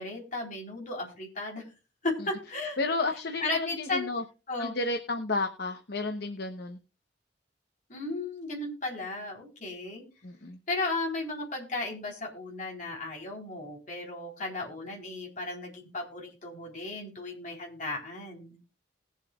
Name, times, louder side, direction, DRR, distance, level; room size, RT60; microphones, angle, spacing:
voice 1, 0.0-1.6 2.0-2.8 3.4-4.1 4.5-4.8 7.9-10.0 10.7-18.6, left 2 dB, 40° left, -1 dB, 3.8 m, -35 dB
voice 2, 2.8-4.2 4.6-6.8 10.2-10.6, left 3 dB, 60° left, 4 dB, 0.9 m, -32 dB
20.5 x 7.3 x 2.4 m, 0.33 s
head